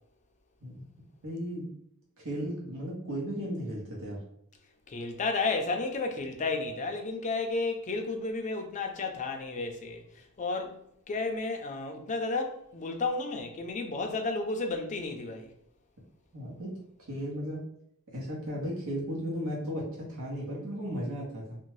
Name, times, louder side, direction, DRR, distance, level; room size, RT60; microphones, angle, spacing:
voice 1, 1.2-1.7 2.2-4.2 16.3-16.8 17.1-17.6 18.1-21.6, equal, 65° right, 1.0 m, -35 dB
voice 2, 4.9-10.8 11.1-15.5, left 3 dB, 35° left, 0.4 m, -32 dB
2.6 x 2.1 x 3.1 m
head